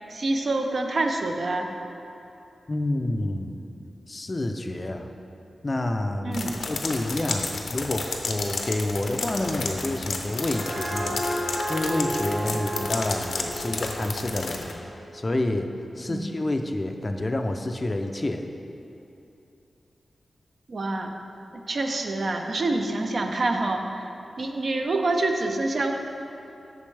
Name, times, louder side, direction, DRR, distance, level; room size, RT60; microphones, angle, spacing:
voice 1, 0.1-1.7 6.2-6.7 16.1-16.4 20.7-21.1 21.5-24.1 24.4-25.9, right 2 dB, 55° right, 4 dB, 0.6 m, -27 dB
voice 2, 2.7-3.6 4.1-5.1 5.6-15.7 16.0-18.4, left 1 dB, 30° left, 5 dB, 0.4 m, -29 dB
sound 1, 6.3-14.7, left 3 dB, 80° left, 0.6 m, -32 dB
sound 2, 10.3-15.5, equal, 25° right, 1.6 m, -33 dB
8.5 x 6.2 x 3.3 m, 2.8 s
wide cardioid pair, 100°, 0 cm